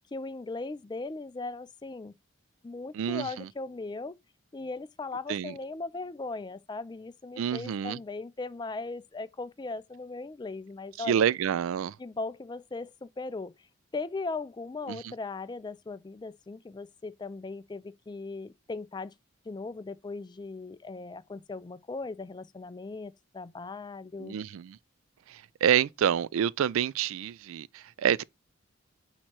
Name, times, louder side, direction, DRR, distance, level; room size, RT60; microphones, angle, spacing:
voice 1, 0.1-2.1 2.6-4.2 4.5-11.2 12.0-13.7 13.9-19.1 19.5-24.4, left 3 dB, 20° left, 0.3 m, -38 dB
voice 2, 2.9-3.5 5.3-5.5 7.4-8.0 11.0-12.0 14.9-15.1 24.2-24.8 25.3-28.2, right 9 dB, 75° right, 0.3 m, -28 dB
8.7 x 2.9 x 4.4 m
head